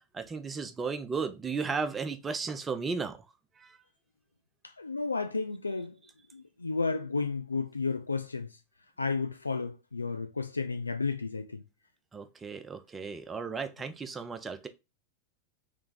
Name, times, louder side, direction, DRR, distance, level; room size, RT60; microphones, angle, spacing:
voice 1, 0.1-3.2 3.6-3.8 12.1-14.7, right 5 dB, 15° right, 0.5 m, -35 dB
voice 2, 4.8-6.0 6.3-8.5 9.0-11.6, left 4 dB, 80° left, 0.3 m, -32 dB
3.4 x 3.2 x 3.8 m
figure-of-eight pair, 90°, 0 cm